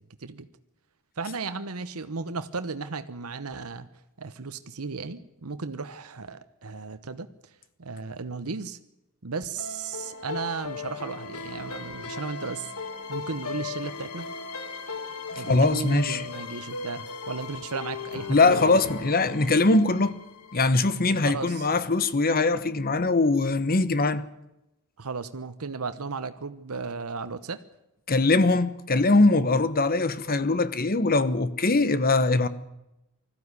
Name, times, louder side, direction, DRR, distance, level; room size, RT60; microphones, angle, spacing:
voice 1, 1.2-3.9 4.2-7.5 7.8-8.8 9.2-12.7 13.1-14.3 15.4-18.8 21.3-21.7 25.0-27.6, right 4 dB, 75° right, 1.0 m, -35 dB
sound 1, 9.6-20.8, left 4 dB, 85° left, 1.8 m, -37 dB
voice 2, 15.3-16.2 18.3-20.2 20.5-24.3 28.1-32.5, left 3 dB, 45° left, 1.1 m, -22 dB
20.5 x 14.0 x 9.7 m
head